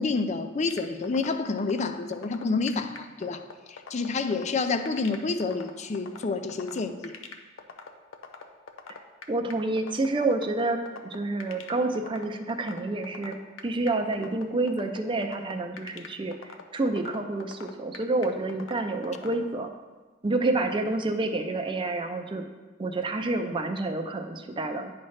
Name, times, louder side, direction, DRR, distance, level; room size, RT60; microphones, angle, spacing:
voice 1, 0.0-7.1, left 4 dB, 35° left, 9 dB, 0.4 m, -29 dB
sound 1, 0.7-19.3, left 5 dB, 80° left, 0.7 m, -42 dB
voice 2, 9.3-13.4 13.6-19.7 20.2-22.4 22.8-24.9, right 2 dB, 25° right, 5 dB, 0.5 m, -28 dB
9.6 x 3.2 x 5.6 m, 1.3 s
head